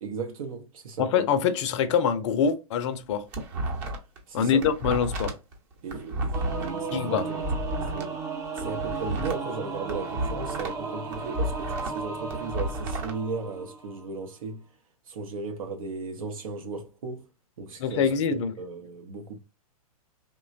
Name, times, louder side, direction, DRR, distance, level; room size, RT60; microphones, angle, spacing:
voice 1, 0.0-1.1 4.3-4.6 5.8-8.2 8.6-14.6 15.1-17.3 17.6-19.4, right 4 dB, 65° right, 0.7 m, -36 dB
voice 2, 1.0-3.2 4.3-5.3 6.9-7.3 17.8-18.5, left 7 dB, 50° left, 0.5 m, -24 dB
sound 1, 2.9-4.2 4.5-8.1 8.5-10.8 11.1-13.1, right 1 dB, 40° right, 0.9 m, -32 dB
Singing / Musical instrument, 6.3-14.1, right 4 dB, 15° right, 0.5 m, -35 dB
3.1 x 2.2 x 2.4 m
hypercardioid pair, 115°, 19 cm